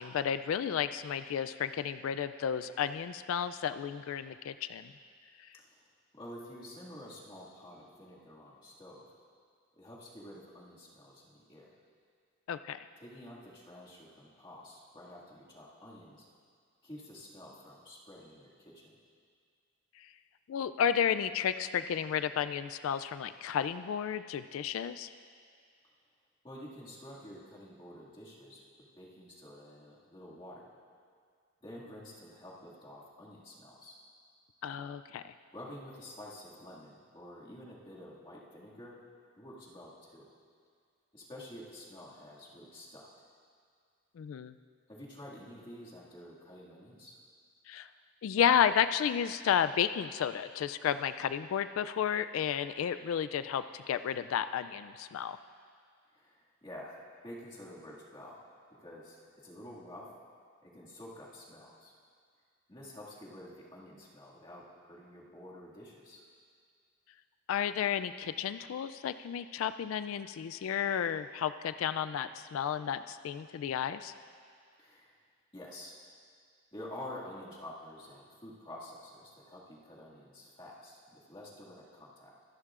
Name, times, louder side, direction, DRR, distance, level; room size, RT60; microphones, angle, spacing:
voice 1, 0.0-4.9 12.5-12.8 20.0-20.1 20.5-25.1 34.6-35.3 44.2-44.5 47.7-47.9 48.2-55.4 67.5-74.1, left 8 dB, 80° left, 12 dB, 0.3 m, -32 dB
voice 2, 5.5-9.1 9.8-11.7 13.0-16.3 16.8-19.0 26.4-30.7 31.6-34.0 35.5-39.0 39.4-40.3 41.1-43.1 44.9-47.2 56.1-58.5 58.8-60.1 60.6-61.9 62.7-66.3 74.8-75.2 75.5-76.0 76.7-82.4, left 1 dB, 25° left, -6 dB, 2.0 m, -49 dB
25.0 x 11.0 x 2.5 m, 2.1 s
head